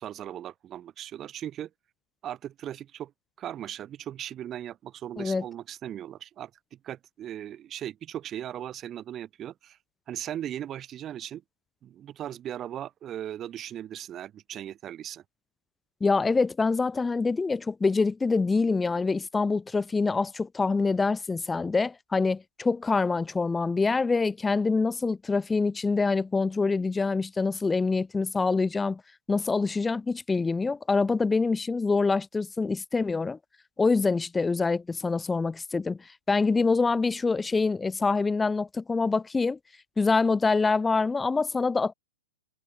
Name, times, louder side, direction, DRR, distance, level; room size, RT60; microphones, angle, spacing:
voice 1, 0.0-1.7 2.2-3.1 3.4-9.8 10.1-11.4 11.8-15.2, right 11 dB, 25° right, 1.0 m, -38 dB
voice 2, 16.0-29.0 29.3-33.4 33.8-39.6 40.0-41.9, left 4 dB, 10° left, 0.3 m, -25 dB
hypercardioid pair, 125°, 0 cm